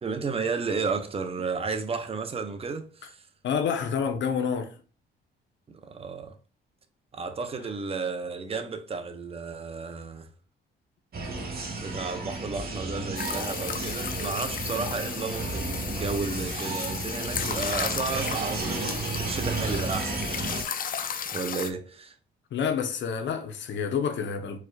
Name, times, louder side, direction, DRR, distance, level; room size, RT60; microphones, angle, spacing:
voice 1, 0.0-3.3 5.7-6.4 7.1-10.3 11.8-20.9 21.3-22.2, right 4 dB, 30° right, 0.7 m, -33 dB
voice 2, 3.4-4.7 22.5-24.6, left 6 dB, 65° left, 1.0 m, -28 dB
sound 1, 11.1-20.6, right 3 dB, 50° right, 1.4 m, -33 dB
sound 2, 13.2-21.7, left 7 dB, 45° left, 0.6 m, -34 dB
4.7 x 4.6 x 2.4 m
cardioid pair, 90°, 20 cm